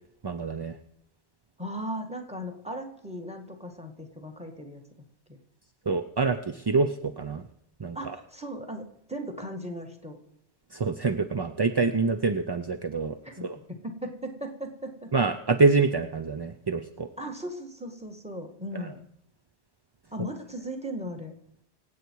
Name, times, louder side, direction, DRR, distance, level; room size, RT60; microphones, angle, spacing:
voice 1, 0.2-0.8 5.9-7.4 7.8-8.1 10.7-13.1 13.4-13.6 15.1-17.1, right 4 dB, 35° right, 7 dB, 0.4 m, -26 dB
voice 2, 1.6-4.8 5.3-5.4 8.0-10.2 13.2-13.5 13.8-15.1 17.2-19.0 20.1-21.3, equal, 5° right, 5 dB, 1.8 m, -37 dB
24.5 x 8.3 x 4.7 m, 0.76 s
omnidirectional pair, 1.1 m